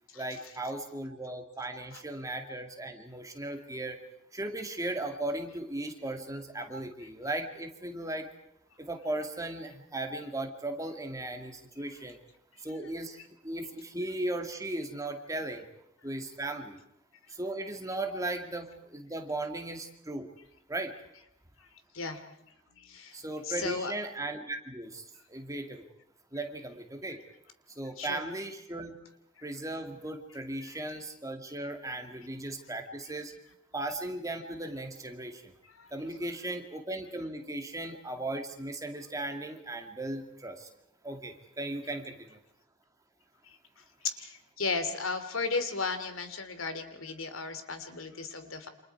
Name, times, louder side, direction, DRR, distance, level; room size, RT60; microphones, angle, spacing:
voice 1, 0.1-4.0 4.3-8.3 8.8-12.2 12.6-15.6 16.0-16.8 17.3-20.3 20.7-20.9 23.1-25.8 26.3-27.2 27.7-29.0 29.4-33.3 33.7-35.5 35.9-40.7 41.0-42.4, right 2 dB, 15° right, 4 dB, 2.4 m, -37 dB
voice 2, 22.7-23.9 28.0-28.2 29.4-29.5 30.6-30.8 35.7-35.9 43.4-48.7, left 4 dB, 80° left, 9 dB, 3.0 m, -35 dB
29.0 x 27.5 x 4.8 m, 0.78 s
head